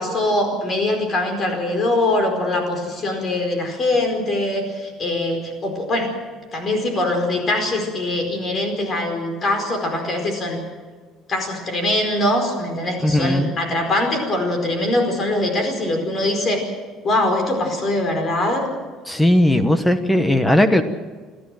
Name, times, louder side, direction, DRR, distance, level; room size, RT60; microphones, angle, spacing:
voice 1, 0.0-6.1 6.5-10.6 11.3-16.7 17.0-18.7, left 1 dB, 30° left, 3 dB, 4.7 m, -22 dB
voice 2, 13.0-13.5 19.1-20.8, left 1 dB, 5° left, 10 dB, 1.1 m, -17 dB
29.5 x 13.0 x 7.7 m, 1.4 s
cardioid pair, 155°, 0 cm